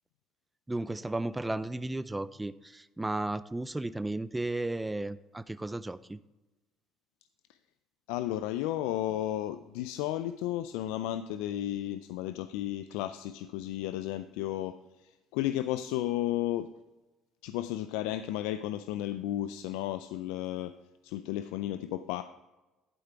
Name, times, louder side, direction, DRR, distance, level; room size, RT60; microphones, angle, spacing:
voice 1, 0.7-6.2, right 2 dB, 10° right, 15 dB, 0.3 m, -34 dB
voice 2, 8.1-16.7 17.4-20.7 21.0-22.2, left 13 dB, 85° left, 11 dB, 0.3 m, -33 dB
11.5 x 5.0 x 4.4 m, 1.1 s
supercardioid pair, 90°, 0 cm